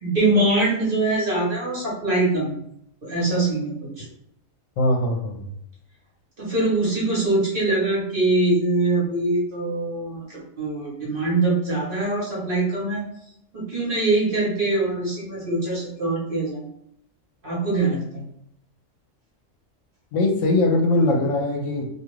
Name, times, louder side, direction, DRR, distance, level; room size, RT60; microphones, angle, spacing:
voice 1, 0.0-2.6 3.0-4.0 6.4-13.0 13.5-16.6 17.4-18.3, right 2 dB, 45° right, -5 dB, 1.1 m, -23 dB
voice 2, 4.8-5.4 20.1-21.9, left 2 dB, 75° left, 1 dB, 1.0 m, -21 dB
2.5 x 2.3 x 3.0 m, 0.75 s
omnidirectional pair, 1.4 m